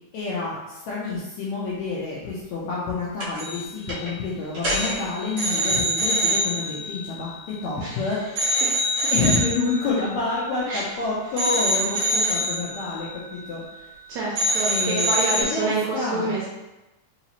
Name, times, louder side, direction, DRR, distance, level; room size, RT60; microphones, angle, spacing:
voice 1, 0.1-8.6 9.1-13.9 14.7-16.3, left 3 dB, 75° left, -7 dB, 1.8 m, -28 dB
sound 1, 3.2-3.6 3.9-4.1 4.5-7.9 8.4-11.0 11.4-14.0 14.3-15.4, equal, 55° right, 1.1 m, -26 dB
voice 2, 14.1-16.5, right 3 dB, 75° right, -5 dB, 1.8 m, -27 dB
4.8 x 3.0 x 2.7 m, 1.0 s
omnidirectional pair, 3.5 m